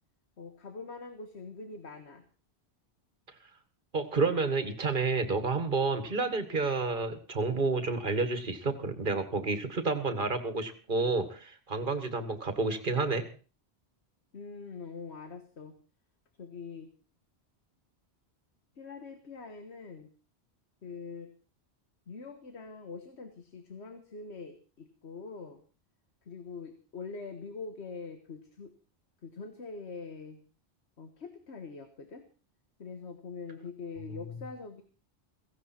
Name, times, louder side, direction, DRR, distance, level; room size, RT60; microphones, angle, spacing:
voice 1, 0.4-2.2 14.3-15.7 16.4-16.9 18.8-20.1 20.8-21.3 22.1-25.6 26.3-28.7 29.2-30.4 31.0-32.2 32.8-34.8, left 4 dB, 90° left, 7 dB, 1.7 m, -43 dB
voice 2, 3.9-13.2 34.2-34.3, right 3 dB, 50° right, 9 dB, 1.9 m, -30 dB
16.5 x 16.0 x 4.4 m, 0.37 s
omnidirectional pair, 1.1 m